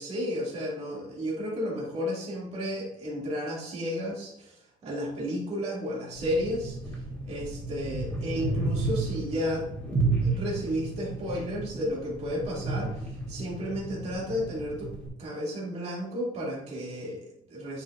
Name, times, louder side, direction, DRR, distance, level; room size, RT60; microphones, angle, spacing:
voice 1, 0.0-4.5 4.8-6.8 7.3-12.9 13.3-14.9 15.2-17.8, equal, 35° right, -4 dB, 2.2 m, -32 dB
sound 1, 6.2-15.1, right 3 dB, 5° left, 2.0 m, -32 dB
9.2 x 5.5 x 2.4 m, 0.73 s
cardioid pair, 165°, 18 cm